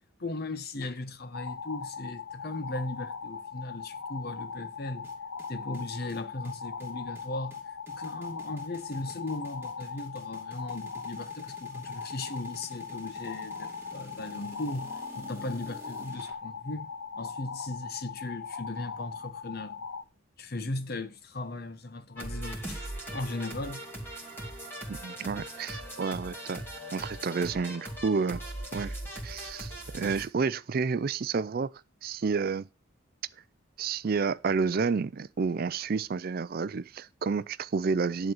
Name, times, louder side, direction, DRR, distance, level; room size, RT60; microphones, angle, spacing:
voice 1, 0.2-5.1 5.5-7.6 7.9-19.8 20.4-23.9 25.4-25.5, left 2 dB, 50° left, 0.9 m, -37 dB
sound 1, 1.3-20.0, left 5 dB, 80° left, 0.7 m, -40 dB
sound 2, 5.0-16.3, right 1 dB, 10° right, 2.7 m, -51 dB
sound 3, 22.2-30.2, right 1 dB, 10° left, 2.4 m, -39 dB
voice 2, 24.9-26.6 26.9-28.4 28.7-29.0 29.2-31.7 32.0-32.7 33.8-38.3, right 5 dB, 45° right, 0.4 m, -30 dB
11.0 x 3.9 x 6.9 m
head